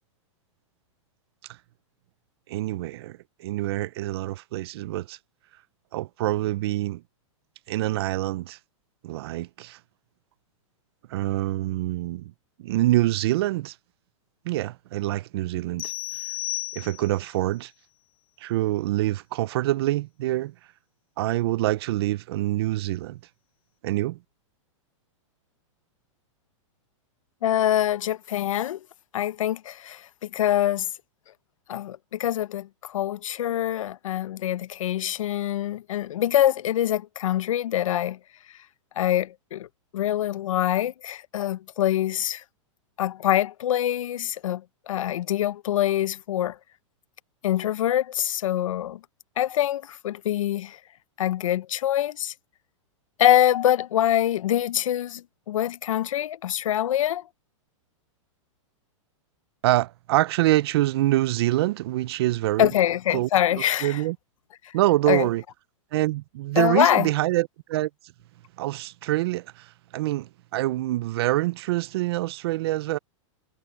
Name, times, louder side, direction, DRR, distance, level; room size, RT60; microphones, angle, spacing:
voice 1, 2.5-5.2 5.9-7.0 7.7-8.6 9.0-9.8 11.1-12.3 12.6-13.7 14.4-15.9 16.7-17.7 18.4-20.5 21.2-23.2 23.8-24.2 59.6-62.7 63.1-64.2 64.7-65.4 65.9-67.9 68.6-73.0, right 16 dB, 50° right, 0.6 m, -25 dB
sound 1, 15.8-17.3, left 20 dB, 30° left, 1.2 m, -33 dB
voice 2, 27.4-28.8 29.1-30.9 31.7-38.2 39.0-39.7 39.9-42.4 43.0-46.6 47.4-49.0 49.4-50.8 51.2-52.3 53.2-57.2 62.6-64.0 64.6-64.7 65.1-65.3 66.6-67.1, left 12 dB, 80° left, 0.7 m, -24 dB
supercardioid pair, 155°, 17 cm